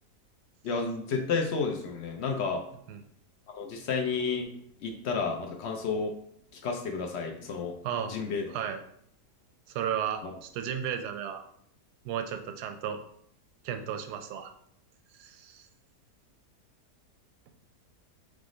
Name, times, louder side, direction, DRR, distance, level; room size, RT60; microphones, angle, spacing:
voice 1, 0.6-2.6 3.5-4.5 4.8-6.1 6.6-7.7 8.1-8.4 10.2-10.3, left 5 dB, 65° left, 2 dB, 0.6 m, -31 dB
voice 2, 7.8-8.2 8.5-8.8 9.7-11.4 12.0-13.0 13.6-14.5 15.2-15.7, right 8 dB, 85° right, 7 dB, 1.1 m, -34 dB
3.6 x 3.4 x 3.8 m, 0.67 s
omnidirectional pair, 1.7 m